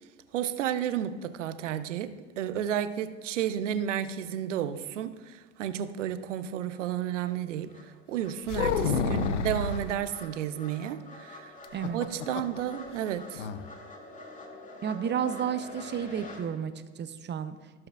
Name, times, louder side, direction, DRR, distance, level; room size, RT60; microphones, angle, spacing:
voice 1, 0.3-7.8 8.1-11.5 11.9-13.5, right 10 dB, 80° right, 0.6 m, -32 dB
sound 1, 6.3-6.4 6.7-16.4, left 2 dB, 20° left, 2.0 m, -47 dB
sound 2, 8.5-9.9 11.6-12.6 12.9-13.0 13.4-13.6, left 5 dB, 80° left, 0.7 m, -29 dB
voice 2, 14.8-16.7 17.0-17.6, right 8 dB, 30° right, 0.6 m, -31 dB
14.0 x 7.6 x 2.4 m
hypercardioid pair, 65°, 36 cm